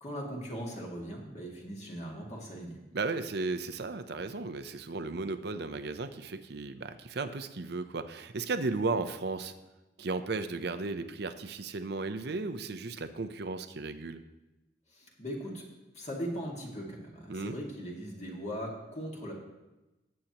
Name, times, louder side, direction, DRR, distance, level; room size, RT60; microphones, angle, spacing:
voice 1, 0.0-2.8 14.9-15.7 15.9-19.3, equal, 40° left, -2 dB, 2.0 m, -39 dB
voice 2, 2.9-9.5 10.0-14.2 17.3-17.6, right 3 dB, 60° right, 9 dB, 0.7 m, -35 dB
18.0 x 7.6 x 3.0 m, 1.0 s
head